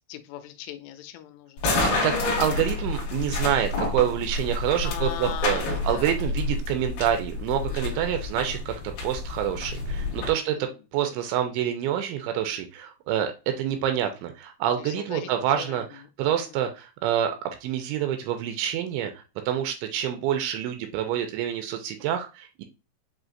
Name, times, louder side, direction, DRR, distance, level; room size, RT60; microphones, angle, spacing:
voice 1, 0.1-1.8 4.8-6.3 7.7-8.0 10.3-10.7 14.9-15.3 15.6-15.8 16.2-16.6, left 11 dB, 90° left, 3.2 m, -39 dB
sound 1, 1.6-10.3, left 3 dB, 65° left, 2.4 m, -29 dB
voice 2, 1.8-8.7 9.0-17.4 17.6-19.1 19.5-22.6, right 10 dB, 85° right, 2.8 m, -27 dB
7.5 x 2.8 x 2.5 m
omnidirectional pair, 5.6 m